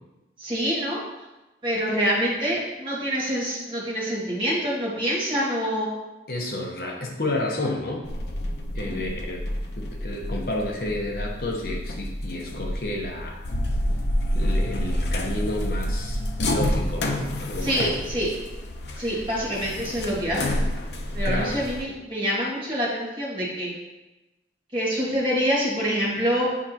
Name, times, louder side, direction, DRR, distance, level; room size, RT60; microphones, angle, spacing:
voice 1, 0.4-1.0 1.6-5.9 8.8-9.0 17.6-18.3 19.0-20.6 21.1-23.7 24.7-26.5, equal, 30° right, -7 dB, 1.9 m, -26 dB
voice 2, 6.3-8.1 8.7-9.4 9.8-13.4 14.3-16.2 16.5-18.0 19.0-19.2 21.2-21.5, left 1 dB, 55° left, -1 dB, 1.0 m, -31 dB
sound 1, 8.0-21.8, left 1 dB, 75° left, 0.7 m, -28 dB
8.6 x 5.1 x 2.9 m, 1.0 s
head